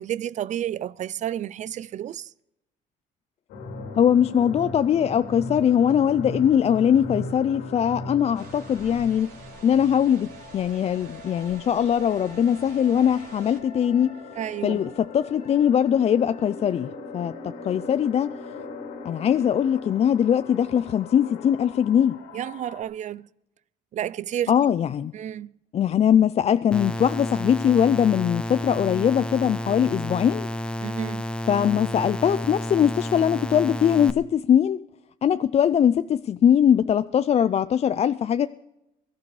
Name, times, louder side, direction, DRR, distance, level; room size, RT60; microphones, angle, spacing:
voice 1, 0.0-2.3 14.4-14.8 22.3-23.3 23.9-24.5 25.1-25.5 30.8-31.2, right 10 dB, 45° right, 0.4 m, -31 dB
sound 1, 3.5-22.8, left 2 dB, 90° left, 3.2 m, -39 dB
voice 2, 4.0-9.3 9.6-10.3 10.5-14.1 14.6-18.3 19.0-22.2 24.5-25.1 25.7-30.5 31.5-34.8 35.2-38.5, left 9 dB, 40° left, 0.4 m, -21 dB
sound 2, 8.3-13.6, right 4 dB, 70° right, 3.7 m, -49 dB
sound 3, 26.7-34.1, equal, 5° left, 0.7 m, -31 dB
22.5 x 13.5 x 3.3 m
cardioid pair, 110°, 17 cm